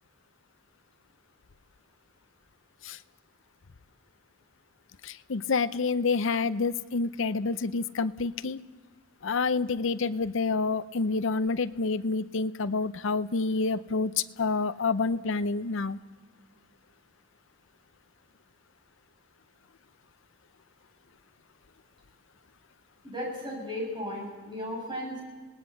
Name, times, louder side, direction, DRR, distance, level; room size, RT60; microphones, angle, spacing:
voice 1, 5.0-8.6 9.2-14.1 14.4-16.0, left 4 dB, 65° left, 14 dB, 0.6 m, -28 dB
voice 2, 23.0-25.2, equal, 20° right, -2 dB, 7.5 m, -35 dB
27.0 x 19.0 x 7.1 m, 1.5 s
head